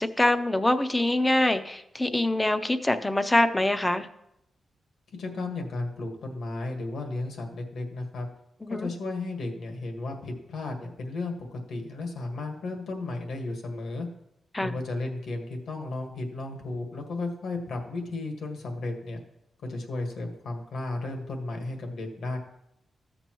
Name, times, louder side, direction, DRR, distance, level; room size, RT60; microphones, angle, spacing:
voice 1, 0.0-4.1 8.6-8.9 14.5-14.7, left 1 dB, 15° left, 10 dB, 0.5 m, -24 dB
voice 2, 5.2-8.3 8.7-14.1 14.6-19.2 19.7-22.4, left 2 dB, 75° left, 3 dB, 1.6 m, -34 dB
14.0 x 6.8 x 3.0 m, 0.81 s
wide cardioid pair, 135°, 0 cm